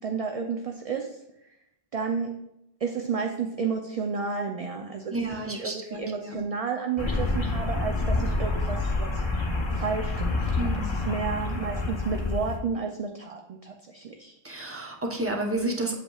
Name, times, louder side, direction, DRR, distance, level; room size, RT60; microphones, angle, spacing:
voice 1, 0.0-1.2 1.9-2.3 2.8-5.2 5.4-9.2 9.7-14.4, right 5 dB, 45° right, 3 dB, 0.5 m, -31 dB
voice 2, 5.1-6.4 10.6-11.1 14.4-15.9, right 2 dB, 15° right, 1 dB, 0.9 m, -31 dB
sound 1, 7.0-12.6, left 2 dB, 30° left, 0.9 m, -28 dB
7.9 x 7.3 x 2.4 m, 0.83 s
omnidirectional pair, 1.0 m